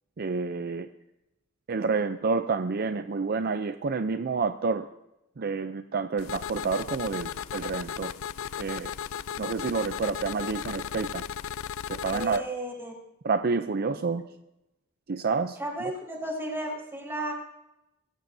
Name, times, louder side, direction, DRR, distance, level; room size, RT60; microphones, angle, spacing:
voice 1, 0.2-0.9 1.7-4.9 5.4-8.1 8.6-8.9 9.4-11.2 11.9-12.4 13.2-14.2 15.1-15.9, right 4 dB, 50° right, 9 dB, 0.5 m, -29 dB
sound 1, 6.2-12.4, left 8 dB, 75° left, 0.4 m, -36 dB
voice 2, 12.0-12.9 15.6-17.3, right 1 dB, 10° right, -2 dB, 4.8 m, -34 dB
24.5 x 15.5 x 2.7 m, 0.91 s
head